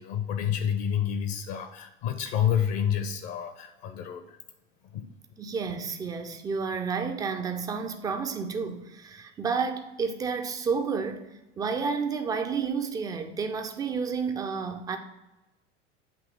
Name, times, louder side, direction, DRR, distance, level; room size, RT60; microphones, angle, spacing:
voice 1, 0.0-4.4 4.9-5.1, left 9 dB, 40° left, 0.5 m, -29 dB
voice 2, 5.4-15.0, right 5 dB, 10° right, 0.3 m, -31 dB
7.8 x 2.9 x 4.8 m
figure-of-eight pair, 80°, 37 cm